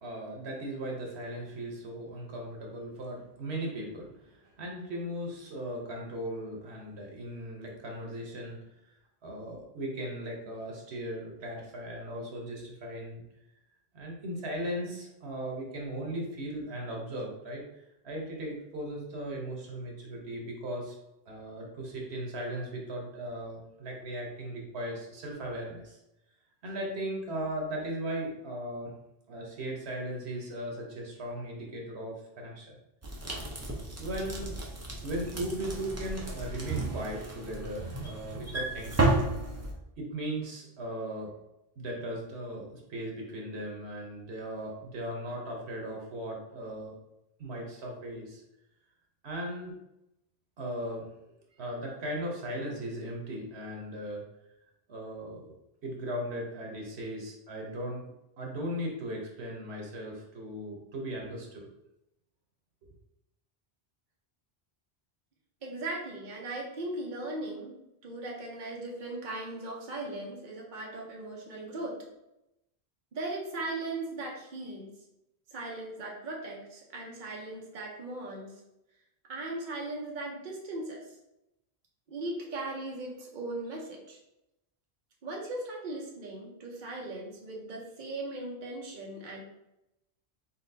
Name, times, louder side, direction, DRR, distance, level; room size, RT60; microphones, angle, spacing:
voice 1, 0.0-8.6 8.8-8.9 9.2-13.2 13.9-20.9 21.3-26.0 26.6-28.9 29.3-32.8 34.0-34.6 35.0-39.3 40.0-41.3 41.8-46.9 47.4-48.4 49.2-49.7 50.6-51.1 51.6-54.2 54.9-55.5 55.8-58.0 58.4-61.7, right 1 dB, 85° right, -1 dB, 1.3 m, -37 dB
sound 1, 33.0-39.7, right 2 dB, 15° right, 0.6 m, -33 dB
voice 2, 65.6-72.0 73.1-74.9 75.5-78.5 79.3-81.0 82.1-84.2 85.2-89.4, right 2 dB, 50° right, -2 dB, 1.0 m, -38 dB
4.3 x 4.0 x 2.7 m, 0.88 s
omnidirectional pair, 1.1 m